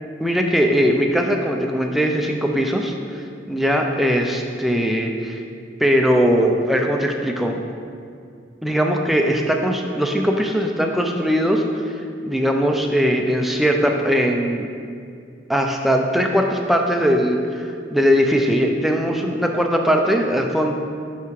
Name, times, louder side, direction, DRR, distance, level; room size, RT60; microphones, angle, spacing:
voice 1, 0.2-5.4 5.8-7.6 8.6-14.7 15.5-20.7, equal, ahead, 2 dB, 0.3 m, -20 dB
5.7 x 5.7 x 3.1 m, 2.3 s
head